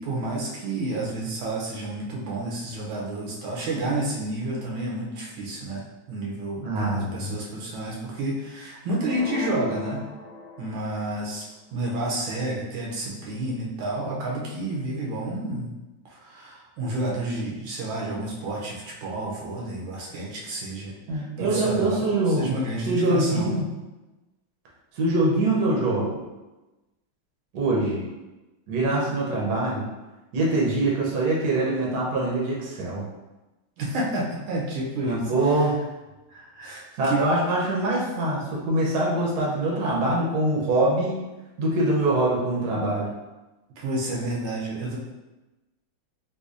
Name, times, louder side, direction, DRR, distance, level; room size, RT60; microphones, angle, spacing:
voice 1, 0.0-10.1 10.6-15.8 16.0-23.5 33.8-35.6 36.3-37.2 43.8-45.0, right 2 dB, 80° right, -4 dB, 1.5 m, -30 dB
voice 2, 6.6-7.3 21.1-23.7 24.9-26.2 27.5-28.0 28.7-29.8 30.3-33.1 35.0-35.7 36.9-41.2 41.6-43.1, right 2 dB, 60° right, -4 dB, 1.2 m, -24 dB
sound 1, 9.0-11.1, left 4 dB, 85° left, 1.5 m, -37 dB
4.1 x 2.7 x 2.5 m, 1.1 s
omnidirectional pair, 2.2 m